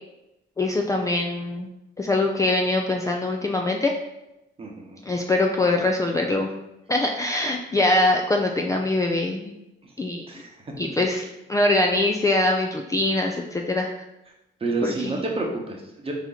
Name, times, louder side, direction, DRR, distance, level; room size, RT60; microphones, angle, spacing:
voice 1, 0.6-1.7 2.0-3.9 5.0-6.5 6.9-9.5 10.0-10.3 10.8-13.9 14.8-15.2, left 2 dB, 15° left, 1 dB, 0.4 m, -23 dB
voice 2, 4.6-5.0 9.8-9.9 10.3-11.0 14.6-16.1, right 2 dB, 30° right, 0 dB, 1.0 m, -30 dB
4.3 x 2.9 x 3.9 m, 0.93 s
cardioid pair, 90°, 20 cm